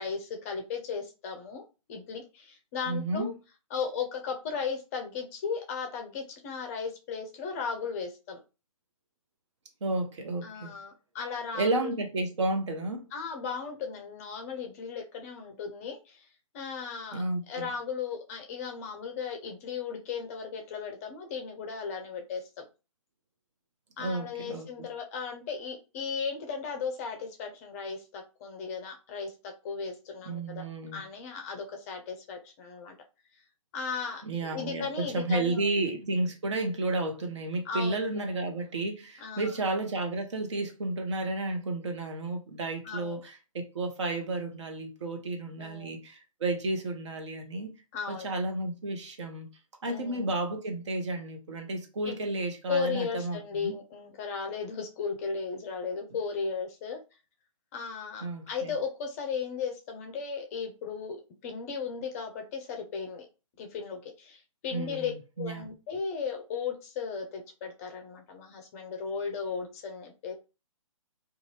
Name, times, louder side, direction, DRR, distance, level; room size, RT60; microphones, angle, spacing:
voice 1, 0.0-1.6 1.9-3.3 3.7-8.4 10.4-12.0 13.1-16.3 16.5-22.4 24.0-30.6 30.9-32.9 33.7-35.7 37.6-38.3 39.2-39.5 42.8-43.2 45.6-45.9 47.9-48.3 49.8-50.2 52.0-52.2 52.7-57.0 57.7-61.2 61.4-63.3 63.6-65.1 65.4-70.3, left 5 dB, 25° left, 0.5 m, -36 dB
voice 2, 2.9-3.3 9.8-10.7 11.5-13.0 17.1-17.7 24.0-24.7 30.2-31.0 34.2-47.7 48.1-49.5 49.8-53.8 58.2-58.7 64.7-65.1 65.4-65.7, right 2 dB, 55° right, 0.8 m, -32 dB
2.5 x 2.3 x 3.1 m
figure-of-eight pair, 135°, 18 cm